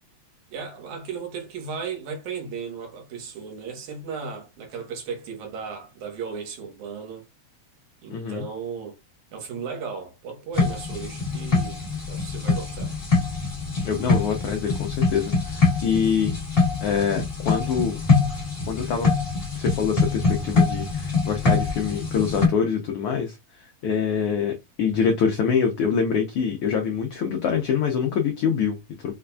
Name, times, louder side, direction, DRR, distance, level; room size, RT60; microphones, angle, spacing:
voice 1, 0.5-7.2 8.0-9.0 9.3-11.8 12.1-12.9, right 6 dB, 80° right, 2.5 m, -35 dB
voice 2, 8.1-8.5 13.8-16.3 16.8-18.0 18.7-19.1 19.5-29.1, left 6 dB, 85° left, 1.2 m, -25 dB
sound 1, 10.5-22.5, left 4 dB, 40° left, 0.8 m, -24 dB
5.6 x 2.4 x 2.2 m
omnidirectional pair, 3.4 m